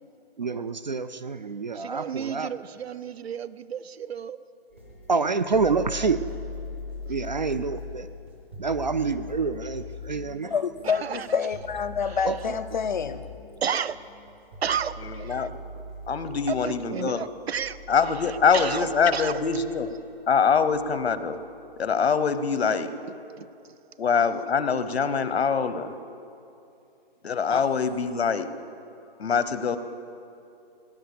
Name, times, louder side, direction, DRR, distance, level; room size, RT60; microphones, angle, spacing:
voice 1, 0.4-2.5 5.1-6.2 7.1-8.1 8.6-10.5 12.2-12.6, right 4 dB, 45° right, 13 dB, 0.4 m, -27 dB
voice 2, 1.7-4.4 10.8-11.4 12.1-12.2 13.6-14.0 14.6-15.5 16.5-17.8 18.2-19.4 23.4-23.5, right 7 dB, 80° right, 17 dB, 0.7 m, -32 dB
sound 1, 4.7-21.9, left 3 dB, 10° right, 0.8 m, -41 dB
voice 3, 10.5-13.3 27.5-27.7, left 6 dB, 50° left, 13 dB, 0.7 m, -28 dB
voice 4, 15.1-15.5 16.1-17.2 17.9-19.9 20.3-21.4 21.8-22.9 24.0-25.9 27.2-28.5 29.2-29.8, left 6 dB, 85° left, 12 dB, 1.1 m, -24 dB
18.5 x 10.0 x 6.9 m, 2.7 s
hypercardioid pair, 180°, 31 cm